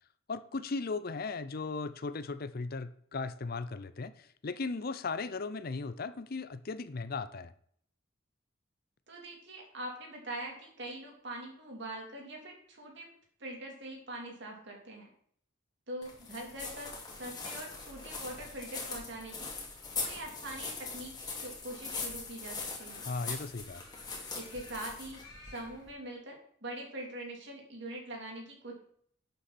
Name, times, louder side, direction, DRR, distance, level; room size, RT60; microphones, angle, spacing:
voice 1, 0.3-7.5 23.1-23.8, left 4 dB, 50° left, 14 dB, 0.6 m, -37 dB
voice 2, 9.1-13.1 13.4-15.1 15.9-19.5 20.0-23.0 24.4-25.2 25.5-26.4 26.6-28.7, right 1 dB, 60° right, 0 dB, 3.4 m, -43 dB
sound 1, 16.0-25.9, left 4 dB, 20° left, 2.4 m, -41 dB
11.5 x 8.0 x 4.3 m, 0.62 s
head